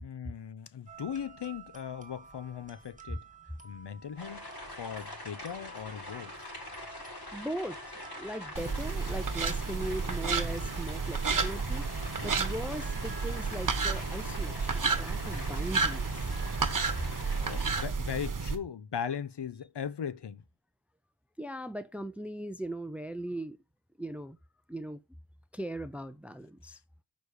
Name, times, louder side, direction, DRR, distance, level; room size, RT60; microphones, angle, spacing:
voice 1, 0.0-3.2 3.6-4.5 4.8-6.5 17.4-20.4, left 8 dB, 75° left, 0.9 m, -38 dB
sound 1, 0.9-17.8, right 4 dB, 20° right, 1.7 m, -53 dB
sound 2, 4.2-17.9, left 1 dB, 60° left, 5.3 m, -44 dB
voice 2, 7.3-11.9 12.2-16.1 21.4-23.6 24.0-24.4 24.7-25.0 25.5-26.8, right 1 dB, 5° right, 0.6 m, -39 dB
sound 3, 8.6-18.6, right 4 dB, 50° right, 1.2 m, -31 dB
6.2 x 5.2 x 6.6 m
wide cardioid pair, 95°, 42 cm